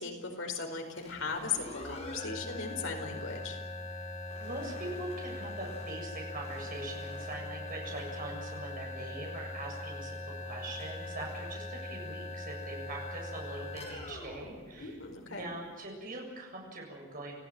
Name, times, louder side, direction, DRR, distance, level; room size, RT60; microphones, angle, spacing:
voice 1, 0.0-3.6 14.8-15.4, left 5 dB, 65° left, 3 dB, 5.0 m, -37 dB
sound 1, 0.9-15.5, left 2 dB, 35° left, 7.4 m, -41 dB
voice 2, 4.4-15.0 15.3-17.4, right 2 dB, 45° right, -1 dB, 7.5 m, -42 dB
29.0 x 16.0 x 9.1 m, 1.3 s
head